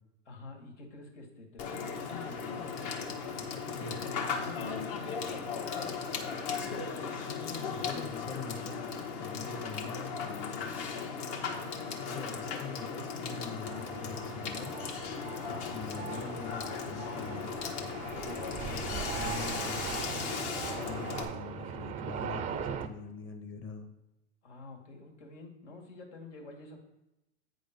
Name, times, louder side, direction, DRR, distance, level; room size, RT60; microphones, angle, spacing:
voice 1, 0.3-5.0 5.3-6.4 6.6-8.1 15.4-15.8 20.8-21.4 24.4-26.8, left 3 dB, 85° left, 1 dB, 2.2 m, -48 dB
Water / Water tap faucet / Sink (filling or washing), 1.6-21.2, left 5 dB, 55° left, 1.3 m, -37 dB
voice 2, 3.7-4.0 7.1-10.6 12.0-14.8 15.7-17.5 18.4-23.9, left 5 dB, 35° left, 6 dB, 1.3 m, -44 dB
sound 1, 13.7-22.9, right 8 dB, 20° right, 0.4 m, -40 dB
8.7 x 3.8 x 5.2 m, 0.92 s
hypercardioid pair, 115°, 35 cm